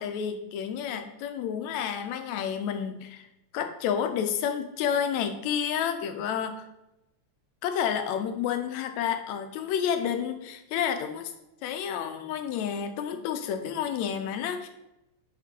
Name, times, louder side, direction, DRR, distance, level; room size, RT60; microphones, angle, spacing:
voice 1, 0.0-3.2 3.5-6.7 7.6-11.3 11.6-14.7, left 8 dB, 80° left, 7 dB, 1.9 m, -30 dB
8.3 x 3.6 x 4.4 m, 0.93 s
omnidirectional pair, 3.3 m